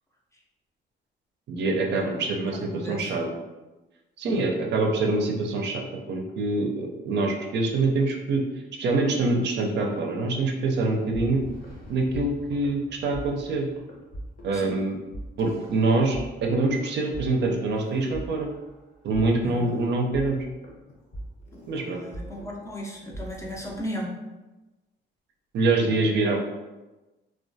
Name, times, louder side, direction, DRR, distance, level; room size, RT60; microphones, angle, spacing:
voice 1, 1.5-3.4 4.2-8.4 8.8-11.4 11.9-13.7 14.4-15.0 15.4-18.5 19.0-20.5 21.7-22.0 25.5-26.4, right 3 dB, 60° right, 1 dB, 0.4 m, -25 dB
voice 2, 2.7-3.3 4.2-4.5 14.5-14.8 19.4-19.6 21.7-24.1 25.8-26.0, equal, 15° left, -3 dB, 0.5 m, -36 dB
sound 1, 11.1-23.8, right 1 dB, 45° left, 0.8 m, -41 dB
2.2 x 2.2 x 2.6 m, 1.1 s
cardioid pair, 90°, 20 cm